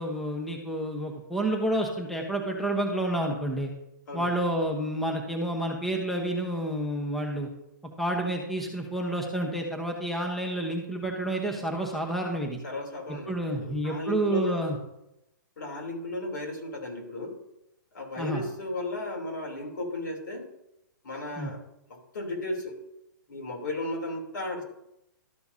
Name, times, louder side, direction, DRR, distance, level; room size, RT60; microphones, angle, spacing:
voice 1, 0.0-3.7 4.1-7.5 8.0-12.6 13.1-14.8 18.2-18.4 21.4-21.5, right 1 dB, ahead, 1 dB, 1.0 m, -29 dB
voice 2, 12.6-14.7 15.6-17.3 17.9-20.4 21.0-21.6 21.9-22.8 23.3-24.6, left 1 dB, 70° left, 0 dB, 3.2 m, -35 dB
13.0 x 6.8 x 2.7 m, 0.85 s
hypercardioid pair, 140°, 11 cm